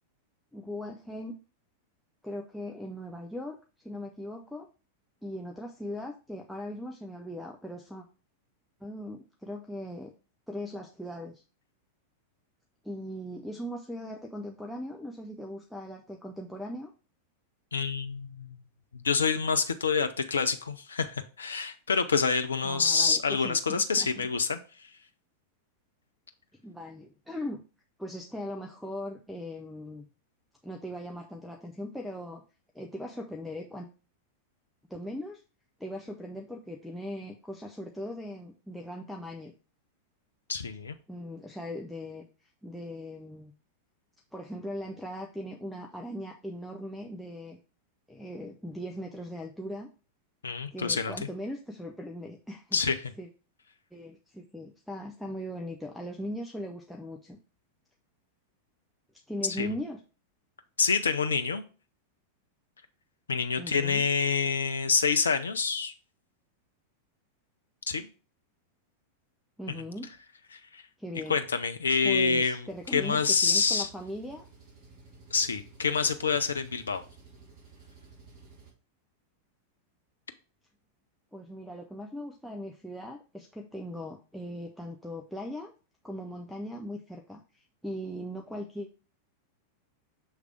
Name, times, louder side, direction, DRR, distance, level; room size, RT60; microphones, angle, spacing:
voice 1, 0.5-1.4 2.2-3.6 3.8-4.7 5.2-8.0 8.8-10.1 10.5-11.4 12.8-16.9 22.6-24.3 26.6-27.6 28.0-30.0 30.6-32.4 32.7-33.9 34.9-35.4 35.8-39.5 41.1-43.5 44.3-47.6 48.1-49.9 50.7-52.8 53.2-53.3 53.9-57.4 59.3-60.0 63.6-64.0 69.6-70.1 71.0-71.4 72.0-74.4 81.3-85.7 86.0-88.9, left 1 dB, ahead, -1 dB, 0.6 m, -39 dB
voice 2, 17.7-18.6 18.9-24.6 40.5-41.0 50.4-51.1 52.7-53.0 59.6-59.7 60.8-61.6 63.3-65.9 67.9-68.1 70.5-70.8 71.3-73.9 75.3-77.0, left 5 dB, 70° left, 9 dB, 0.5 m, -27 dB
Engine, 72.7-78.7, right 4 dB, 35° right, 2.8 m, -54 dB
6.4 x 3.3 x 4.9 m, 0.35 s
figure-of-eight pair, 90°, 0 cm